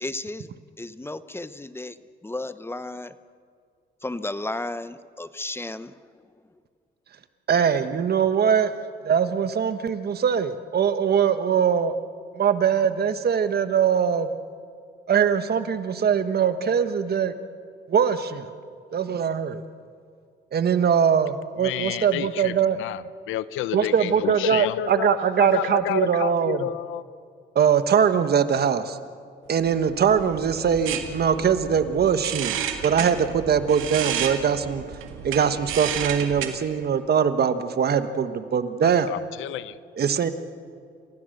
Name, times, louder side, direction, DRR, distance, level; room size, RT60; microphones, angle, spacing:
voice 1, 0.0-0.5 0.8-2.0 2.2-3.1 4.0-5.9, left 2 dB, 10° left, 13 dB, 0.8 m, -33 dB
voice 2, 7.5-8.7 9.0-11.9 12.4-14.4 15.1-17.3 17.9-18.5 18.9-19.6 20.5-22.8 23.7-26.7 27.5-29.0 29.5-34.8 35.2-39.1 39.9-40.3, right 7 dB, 55° right, 10 dB, 1.3 m, -22 dB
voice 3, 21.6-22.5 22.8-23.0 23.3-27.0 38.8-39.8, left 13 dB, 90° left, 17 dB, 0.7 m, -30 dB
sound 1, 29.7-36.5, right 9 dB, 85° right, 2.0 m, -32 dB
29.0 x 16.0 x 6.7 m, 2.2 s
cardioid pair, 90°, 20 cm